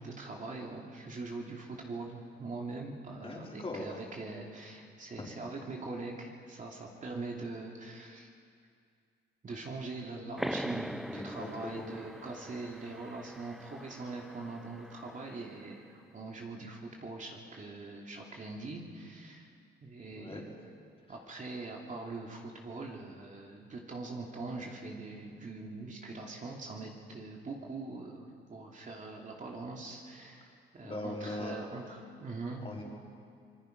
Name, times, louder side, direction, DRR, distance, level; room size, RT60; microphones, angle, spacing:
voice 1, 0.0-8.3 9.4-19.5 19.8-20.5 21.1-32.6, right 3 dB, 40° right, -1 dB, 2.9 m, -42 dB
voice 2, 3.2-4.0 5.2-5.3 11.1-11.9 20.1-20.4 30.8-31.5 32.6-32.8, left 2 dB, 30° left, -2 dB, 4.8 m, -40 dB
sound 1, 10.4-15.6, equal, ahead, 0.6 m, -42 dB
25.5 x 21.0 x 5.3 m, 2.3 s
cardioid pair, 90°, 20 cm